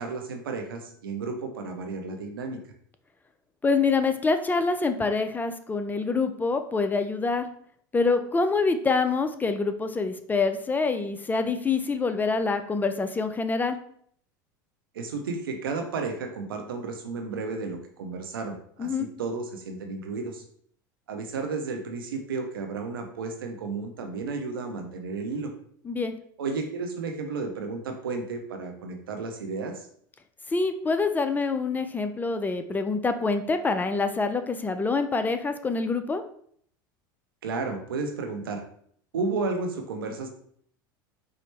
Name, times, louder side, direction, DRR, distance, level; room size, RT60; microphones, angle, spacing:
voice 1, 0.0-2.6 14.9-20.4 21.1-25.5 26.4-29.9 37.4-38.6 39.1-40.3, right 4 dB, 90° right, 5 dB, 0.6 m, -33 dB
voice 2, 3.6-7.5 7.9-13.8 18.8-19.1 25.9-26.1 30.5-36.2, left 4 dB, 15° left, 8 dB, 0.3 m, -26 dB
4.4 x 2.0 x 3.2 m, 0.62 s
hypercardioid pair, 90°, 11 cm